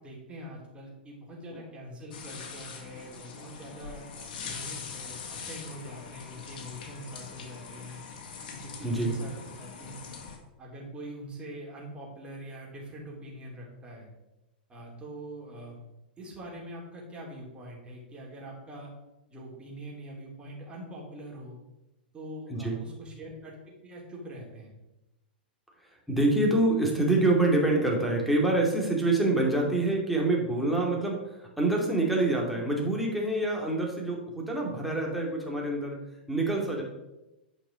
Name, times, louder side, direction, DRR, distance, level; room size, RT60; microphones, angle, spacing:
voice 1, 0.0-8.0 8.5-10.0 10.6-14.1 14.7-15.9 16.2-18.9 19.3-21.6 22.1-23.6 23.8-24.7, right 1 dB, 20° right, -3 dB, 3.4 m, -43 dB
sound 1, 2.1-10.4, left 5 dB, 60° left, 1.7 m, -42 dB
voice 2, 8.8-9.1 22.5-22.8 26.1-36.0 36.3-36.8, right 2 dB, ahead, -2 dB, 2.6 m, -26 dB
8.9 x 5.4 x 5.1 m, 0.97 s
hypercardioid pair, 105°, 5 cm